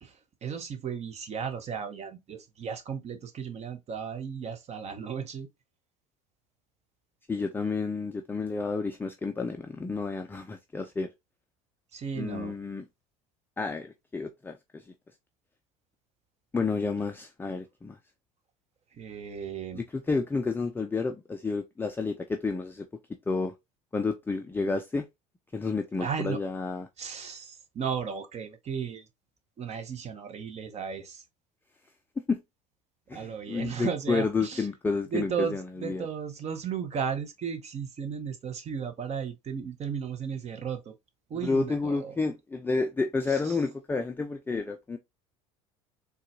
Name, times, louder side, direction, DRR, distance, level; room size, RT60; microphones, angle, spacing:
voice 1, 0.0-5.5 11.9-12.5 18.9-19.8 26.0-26.4 27.0-29.1 29.6-31.2 33.1-34.7 35.1-40.9 41.3-42.2 43.3-43.6, right 7 dB, 35° right, 0.7 m, -35 dB
voice 2, 7.3-11.1 12.2-12.8 13.6-14.8 16.5-18.0 19.7-22.9 23.3-23.5 23.9-25.1 25.5-26.9 32.3-32.4 33.1-36.1 41.3-45.0, left 4 dB, 10° left, 0.4 m, -30 dB
3.8 x 2.3 x 2.5 m
hypercardioid pair, 75°, 18 cm